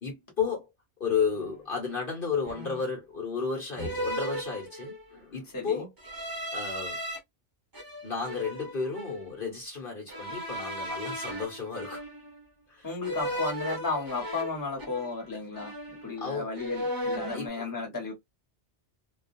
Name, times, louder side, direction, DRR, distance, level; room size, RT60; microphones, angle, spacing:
voice 1, 0.0-0.7 1.0-5.9 6.5-7.0 8.0-12.0 12.7-13.4 16.2-16.5 17.3-17.7, left 5 dB, 50° left, 1.1 m, -33 dB
sound 1, 1.4-1.6 2.4-3.0 3.8-5.2 6.0-7.2 7.7-9.3 10.1-12.4 13.0-15.3 15.5-16.3 16.6-17.5, equal, 25° right, 0.5 m, -36 dB
voice 2, 5.5-5.9 12.8-15.7 16.0-18.1, left 3 dB, 20° left, 1.0 m, -33 dB
2.3 x 2.3 x 2.5 m
omnidirectional pair, 1.2 m